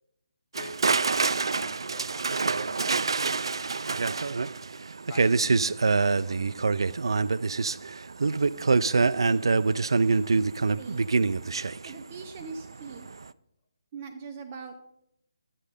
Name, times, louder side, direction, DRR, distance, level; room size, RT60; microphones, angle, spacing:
voice 1, 0.5-4.4 5.0-6.6, left 4 dB, 30° left, 7 dB, 1.2 m, -48 dB
sound 1, 0.5-12.6 12.9-13.2, right 4 dB, 80° right, 0.4 m, -25 dB
voice 2, 11.8-13.1 13.9-14.7, right 5 dB, 20° right, 5 dB, 0.5 m, -41 dB
11.0 x 8.4 x 5.0 m, 0.80 s
hypercardioid pair, 175°, 3 cm